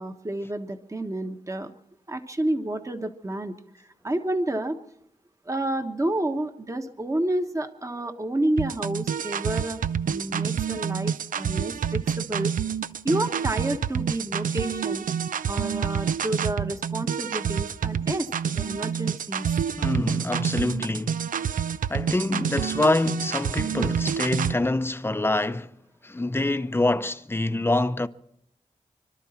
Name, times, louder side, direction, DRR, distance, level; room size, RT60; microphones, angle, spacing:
voice 1, 0.0-1.7 2.1-3.5 4.0-4.8 5.5-12.5 13.0-15.1 15.5-19.5, right 1 dB, 25° right, 1.3 m, -29 dB
sound 1, 8.6-24.6, right 7 dB, 80° right, 0.5 m, -28 dB
voice 2, 19.8-21.3 21.9-25.8 26.0-28.1, left 2 dB, 15° left, 0.7 m, -25 dB
26.5 x 12.5 x 4.4 m
wide cardioid pair, 80°, 14 cm